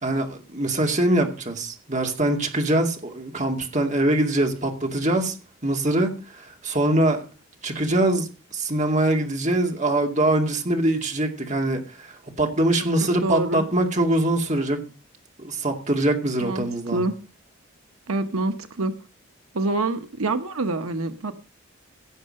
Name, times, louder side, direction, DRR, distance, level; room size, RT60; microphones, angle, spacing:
voice 1, 0.0-5.3 5.6-7.2 7.6-14.8 15.4-17.0, right 1 dB, 35° right, 2.4 m, -23 dB
voice 2, 13.2-13.6 16.4-17.1 18.1-19.0 19.5-21.4, right 2 dB, 85° right, 1.0 m, -26 dB
17.0 x 6.6 x 6.4 m
head